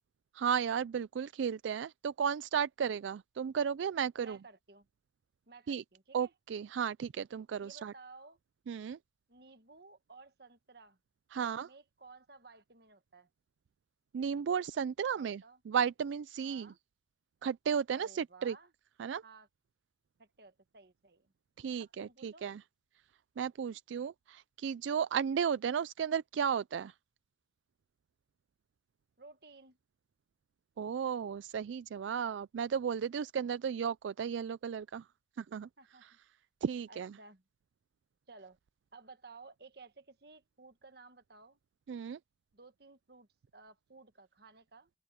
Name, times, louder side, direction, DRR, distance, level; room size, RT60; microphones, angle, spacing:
voice 1, 0.3-4.4 5.7-5.8 6.1-7.9 8.7-9.0 11.3-11.7 14.1-16.7 17.4-18.6 19.0-19.2 21.6-22.6 23.4-26.9 30.8-35.1 35.4-35.7 36.6-37.1 41.9-42.2, right 7 dB, 75° right, 0.3 m, -34 dB
voice 2, 4.2-4.9 5.5-6.3 7.6-8.4 9.3-11.0 11.6-13.3 15.2-15.6 16.4-16.8 17.9-18.7 19.2-19.5 20.2-21.3 21.8-22.4 29.2-29.8 35.8-36.0 36.9-37.4 38.3-38.6 38.9-41.6 42.5-43.3 43.5-44.9, right 3 dB, 55° right, 1.5 m, -56 dB
open air
head